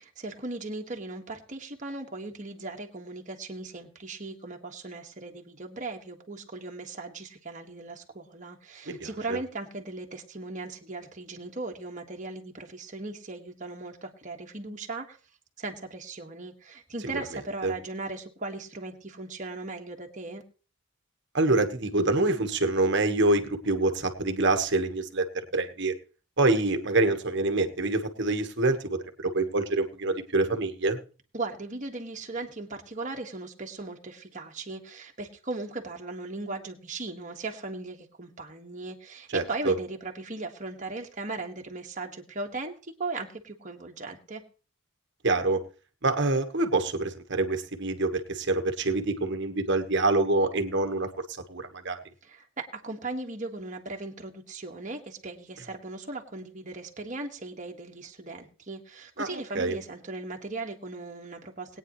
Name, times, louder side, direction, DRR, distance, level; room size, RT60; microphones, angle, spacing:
voice 1, 0.2-15.2 15.6-20.4 31.3-44.4 52.2-61.8, right 3 dB, 35° right, 2 dB, 1.6 m, -38 dB
voice 2, 8.9-9.4 17.1-17.2 17.6-17.7 21.3-25.2 25.5-25.9 26.4-31.0 39.3-39.7 45.2-45.6 46.0-51.1 51.5-52.0 59.2-59.8, right 2 dB, 55° right, 7 dB, 1.4 m, -26 dB
21.0 x 9.3 x 3.1 m, 0.37 s
head